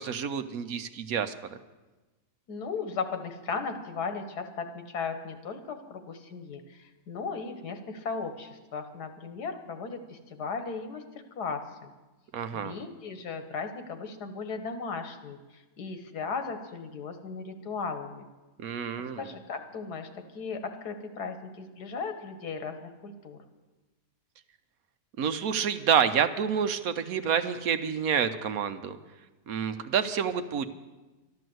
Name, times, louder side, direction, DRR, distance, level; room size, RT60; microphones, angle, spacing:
voice 1, 0.0-1.3 12.3-12.7 18.6-19.3 25.2-29.0 29.5-30.6, right 7 dB, 70° right, 10 dB, 1.2 m, -28 dB
voice 2, 2.5-11.0 11.4-11.9 12.5-18.3 19.2-23.4, left 5 dB, 85° left, 8 dB, 1.8 m, -36 dB
12.5 x 11.5 x 7.8 m, 1.2 s
omnidirectional pair, 1.7 m